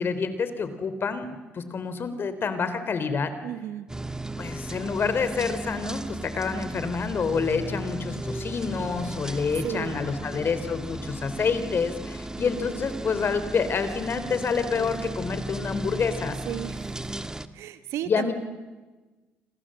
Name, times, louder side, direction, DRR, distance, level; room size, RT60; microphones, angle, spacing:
voice 1, 0.0-3.3 4.4-16.4 18.1-18.3, left 5 dB, 50° left, 11 dB, 3.5 m, -28 dB
voice 2, 3.4-3.9 9.6-10.3 16.4-16.9 17.5-18.3, right 11 dB, 80° right, 11 dB, 1.7 m, -34 dB
sound 1, 3.9-17.5, right 1 dB, 15° right, 1.5 m, -35 dB
29.5 x 25.5 x 7.8 m, 1.2 s
supercardioid pair, 65°, 5 cm